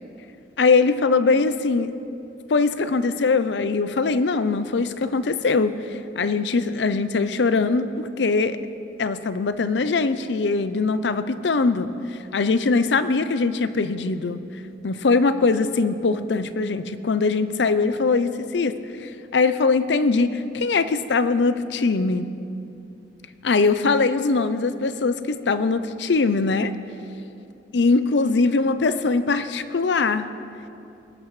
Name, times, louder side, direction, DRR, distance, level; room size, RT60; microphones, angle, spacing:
voice 1, 0.6-1.9 2.5-5.8 6.2-8.6 9.0-11.9 12.3-14.4 14.8-22.3 23.4-26.7 27.7-30.3, left 4 dB, 70° left, 12 dB, 0.6 m, -21 dB
21.0 x 12.5 x 3.2 m, 2.7 s
head